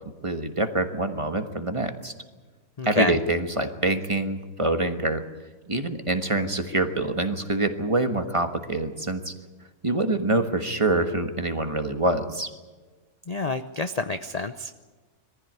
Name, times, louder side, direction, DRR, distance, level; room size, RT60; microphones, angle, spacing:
voice 1, 0.2-2.1 2.8-5.2 5.7-9.3 9.8-12.5, right 2 dB, 25° right, 7 dB, 1.4 m, -25 dB
voice 2, 2.8-3.2 13.3-14.7, left 3 dB, 40° left, 9 dB, 0.6 m, -28 dB
22.5 x 15.0 x 9.4 m, 1.3 s
omnidirectional pair, 1.5 m